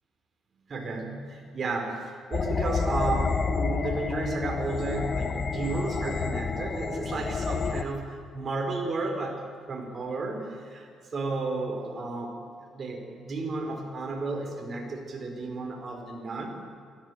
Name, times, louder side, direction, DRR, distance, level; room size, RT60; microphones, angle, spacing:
voice 1, 0.7-12.4 12.7-16.5, right 3 dB, 45° right, 3 dB, 4.2 m, -33 dB
sound 1, 2.3-7.8, left 5 dB, 45° left, 1.2 m, -29 dB
18.0 x 16.0 x 9.2 m, 2.3 s
cardioid pair, 90°, 0 cm